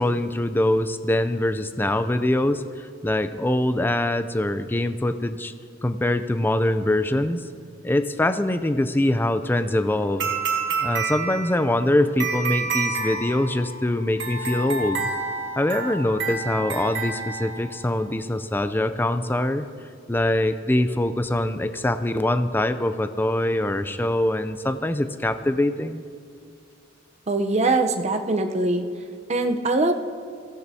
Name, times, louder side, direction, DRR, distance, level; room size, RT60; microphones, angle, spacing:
voice 1, 0.0-5.5 5.8-7.4 7.8-10.3 10.8-15.1 15.6-19.7 20.1-26.0, left 1 dB, 10° left, 11 dB, 0.4 m, -23 dB
sound 1, 10.2-17.9, right 4 dB, 65° right, 1.9 m, -29 dB
voice 2, 27.3-28.8 29.3-29.9, right 2 dB, 35° right, 5 dB, 0.7 m, -22 dB
22.5 x 15.5 x 2.8 m, 2.3 s
head